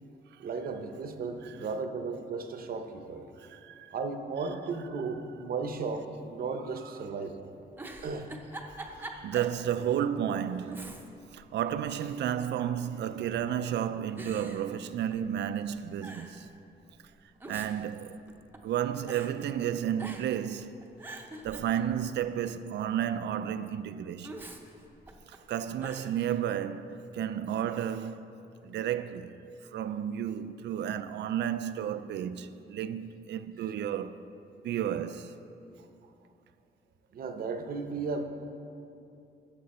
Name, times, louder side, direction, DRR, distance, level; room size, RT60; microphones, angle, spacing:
voice 1, 0.4-3.3 3.9-7.4 8.0-8.3 37.1-38.2, right 4 dB, 55° right, 0.8 m, -35 dB
voice 2, 3.4-3.9 8.9-16.5 17.5-18.2 18.6-20.7 21.4-24.4 25.3-28.2 28.6-29.4 29.7-34.2 34.6-35.4, right 9 dB, 80° right, 0.4 m, -32 dB
Giggle, 7.7-9.6 10.0-10.1 10.7-11.3 11.7-12.5 13.2-13.6 14.2-15.4 15.7-15.8 16.0-16.4 17.2-18.7 19.1-19.3 20.0-20.4 20.8-22.2 24.2-25.4 25.8-26.1, right 2 dB, 10° right, 0.7 m, -44 dB
13.5 x 7.8 x 4.2 m
wide cardioid pair, 165°, 18 cm